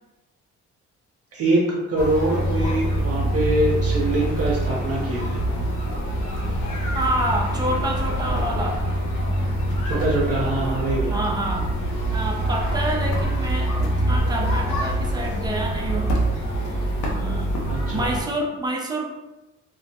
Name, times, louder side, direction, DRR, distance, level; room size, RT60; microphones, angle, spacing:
voice 1, 1.3-5.4 9.9-11.2 17.7-18.1, right 1 dB, 50° right, -4 dB, 0.7 m, -24 dB
sound 1, 2.0-18.2, right 1 dB, 90° left, 0.6 m, -25 dB
voice 2, 6.9-8.8 11.0-11.7 12.1-16.2 17.0-17.5 17.9-19.1, right 1 dB, 15° right, 1 dB, 0.4 m, -28 dB
2.2 x 2.1 x 2.7 m, 1.0 s
cardioid pair, 90°, 30 cm